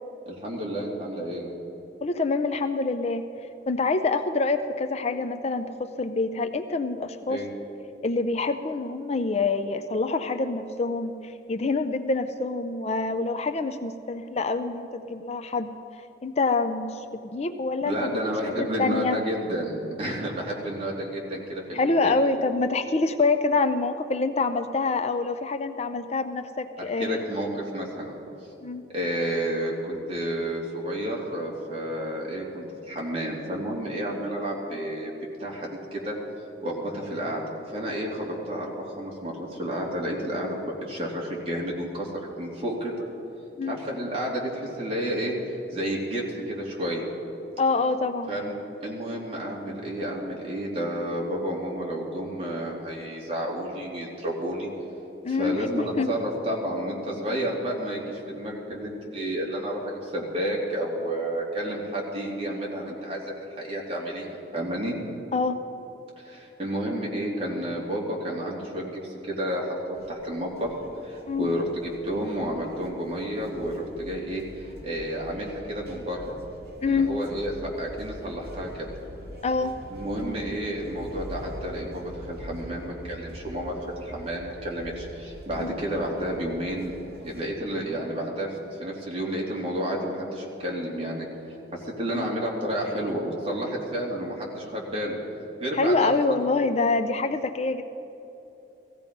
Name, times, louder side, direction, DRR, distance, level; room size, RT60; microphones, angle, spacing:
voice 1, 0.2-1.5 7.3-7.5 17.8-22.1 26.8-28.2 28.9-35.1 35.4-36.1 36.6-37.4 37.7-42.1 42.4-43.0 43.7-45.3 45.7-47.0 48.3-48.5 48.8-54.7 55.3-64.9 66.2-70.7 71.0-76.3 76.8-78.9 79.9-86.9 87.2-91.3 91.7-95.2 95.6-96.3, equal, 35° right, -3 dB, 3.0 m, -31 dB
voice 2, 2.0-3.2 3.7-7.4 8.0-15.7 16.2-17.0 17.3-18.2 18.8-19.2 21.7-27.2 28.6-28.9 43.6-43.8 47.6-48.3 55.2-56.1 65.3-65.6 71.3-71.5 76.8-77.1 79.4-79.8 85.6-85.8 92.1-92.3 95.8-97.8, left 3 dB, 35° left, 9 dB, 0.5 m, -26 dB
sound 1, 69.9-87.5, equal, 60° right, 2.2 m, -44 dB
17.0 x 15.5 x 5.3 m, 2.9 s
head